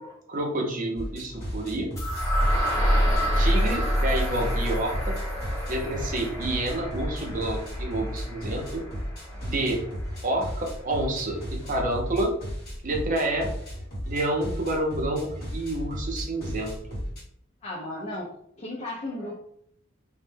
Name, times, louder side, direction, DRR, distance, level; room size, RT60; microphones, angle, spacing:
voice 1, 0.3-1.9 3.4-5.2 5.7-8.8 9.4-9.8 10.2-12.3 12.8-13.5 14.1-17.0, right 1 dB, 40° right, 1 dB, 0.6 m, -29 dB
sound 1, 1.0-17.2, equal, 50° left, 1.1 m, -36 dB
sound 2, 2.0-9.9, equal, 15° left, 0.8 m, -27 dB
voice 2, 17.6-19.3, left 1 dB, 35° left, -5 dB, 0.5 m, -35 dB
2.1 x 2.1 x 3.2 m, 0.70 s
head